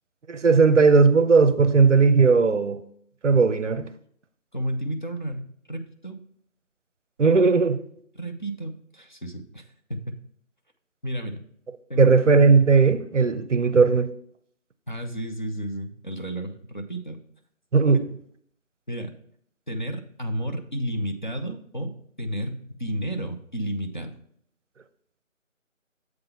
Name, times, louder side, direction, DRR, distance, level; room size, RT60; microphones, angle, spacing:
voice 1, 0.3-2.8 3.2-3.9 7.2-7.8 12.0-14.1 17.7-18.0, right 4 dB, 65° right, 0.6 m, -17 dB
voice 2, 4.5-6.2 8.2-9.6 9.9-10.2 11.0-11.4 11.9-12.1 14.9-17.2 18.9-19.1 19.7-24.1, right 1 dB, 35° left, 0.6 m, -32 dB
7.7 x 3.8 x 5.5 m
figure-of-eight pair, 170°, 40 cm